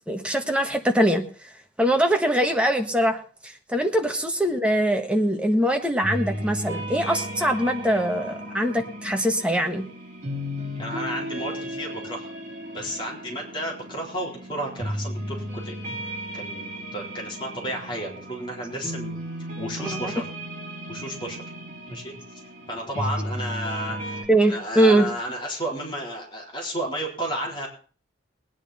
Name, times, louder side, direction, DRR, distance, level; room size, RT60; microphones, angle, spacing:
voice 1, 0.1-1.5 1.8-9.8 19.8-20.1 24.3-25.1, right 1 dB, 5° right, 4 dB, 1.3 m, -22 dB
sound 1, 6.0-24.2, equal, 40° right, 4.8 m, -35 dB
voice 2, 10.8-12.3 12.7-15.8 16.3-19.2 19.6-20.2 20.9-21.4 21.9-22.1 22.7-24.2 24.5-27.7, equal, 25° left, -1 dB, 3.8 m, -32 dB
19.5 x 9.9 x 4.2 m, 0.40 s
head